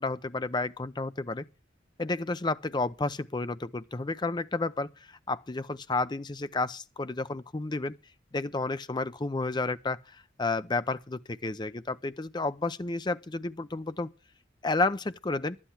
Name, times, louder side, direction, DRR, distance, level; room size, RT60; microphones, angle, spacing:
voice 1, 0.0-1.4 2.0-7.9 8.3-14.1 14.6-15.6, left 3 dB, 25° left, 0.6 m, -31 dB
11.5 x 9.9 x 5.7 m
head